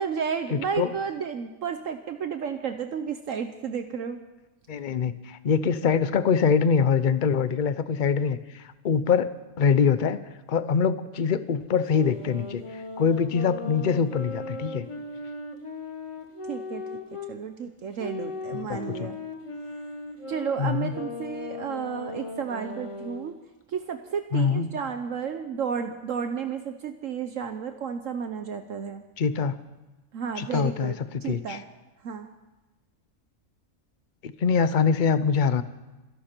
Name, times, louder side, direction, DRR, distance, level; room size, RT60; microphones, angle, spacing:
voice 1, 0.0-4.2 16.5-16.8 17.3-19.2 20.3-23.3 23.7-29.0 30.1-31.6 32.0-32.3, right 7 dB, 65° right, 8 dB, 1.2 m, -32 dB
voice 2, 0.5-0.9 4.7-10.2 10.5-12.6 13.0-14.9 18.5-19.1 20.6-20.9 24.3-24.7 29.2-29.5 30.4-31.6 34.2-35.6, left 6 dB, 45° left, 13 dB, 0.7 m, -24 dB
sound 1, 11.9-17.3 18.0-23.3, left 3 dB, 20° left, 1.4 m, -38 dB
26.5 x 11.5 x 4.5 m, 1.1 s
omnidirectional pair, 1.5 m